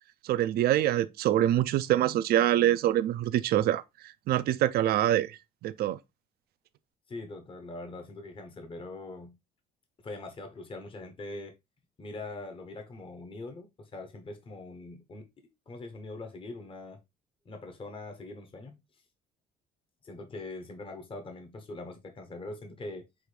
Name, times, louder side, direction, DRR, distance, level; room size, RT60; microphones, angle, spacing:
voice 1, 0.2-6.0, right 12 dB, 65° right, 0.5 m, -25 dB
voice 2, 7.1-9.4 10.0-11.6 12.0-15.3 15.7-17.0 17.4-18.8 20.0-23.1, left 2 dB, 30° left, 1.1 m, -42 dB
6.2 x 2.7 x 3.2 m
cardioid pair, 110°, 17 cm